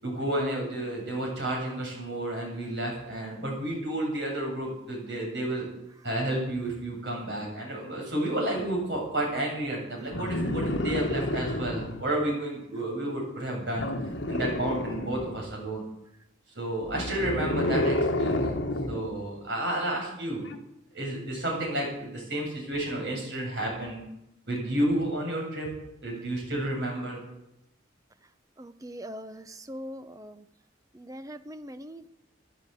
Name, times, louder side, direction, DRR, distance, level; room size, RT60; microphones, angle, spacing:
voice 1, 0.0-5.6 6.0-13.9 14.3-15.8 16.6-18.6 18.9-20.4 20.9-24.0 24.5-25.7 26.0-27.2, right 1 dB, 65° right, -1 dB, 7.5 m, -31 dB
sound 1, 10.1-12.1 13.8-15.5 16.8-19.1 20.4-20.6, left 1 dB, 75° left, 1.5 m, -29 dB
voice 2, 28.6-30.5 30.9-32.1, equal, 20° right, 11 dB, 0.7 m, -41 dB
14.5 x 10.5 x 8.4 m, 0.83 s
head